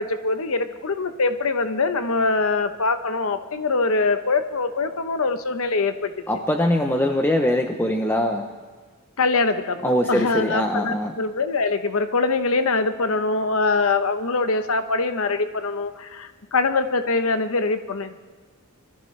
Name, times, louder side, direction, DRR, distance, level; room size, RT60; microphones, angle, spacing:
voice 1, 0.0-6.1 9.2-18.1, left 3 dB, 75° left, 9 dB, 0.9 m, -23 dB
voice 2, 6.3-8.5 9.8-11.1, left 1 dB, 10° left, 3 dB, 0.7 m, -22 dB
23.5 x 14.5 x 3.3 m, 1.5 s
head